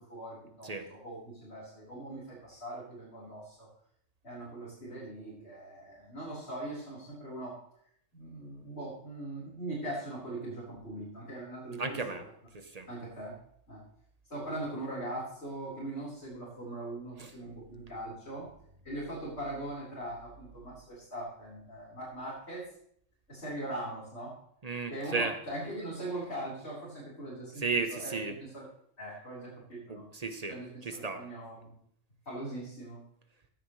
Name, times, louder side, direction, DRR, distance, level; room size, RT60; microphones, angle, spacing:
voice 1, 0.0-3.7 4.2-7.6 8.1-12.2 12.9-13.3 13.7-13.8 14.3-18.5 18.8-22.7 23.3-24.3 24.9-27.6 27.9-28.1 28.4-28.6 29.0-30.0 30.5-31.7 32.2-33.0, right 1 dB, 55° left, -9 dB, 4.8 m, -41 dB
voice 2, 11.8-12.3 12.5-12.9 17.2-17.3 24.6-25.3 27.6-28.4 29.9-31.2, right 4 dB, 35° right, 8 dB, 1.0 m, -34 dB
15.5 x 10.0 x 3.2 m, 0.67 s
omnidirectional pair, 1.3 m